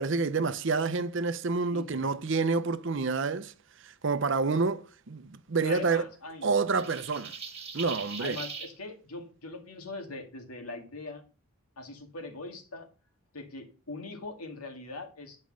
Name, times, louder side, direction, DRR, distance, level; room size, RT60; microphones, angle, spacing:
voice 1, 0.0-3.5 3.8-6.0 6.4-7.3 7.7-8.4, right 4 dB, 55° right, 0.6 m, -28 dB
voice 2, 1.7-2.1 5.6-6.6 8.2-11.2 11.8-12.9 13.3-15.4, left 2 dB, 90° left, 2.1 m, -41 dB
sound 1, 6.8-8.7, right 6 dB, 25° right, 1.7 m, -40 dB
9.4 x 5.3 x 6.2 m
head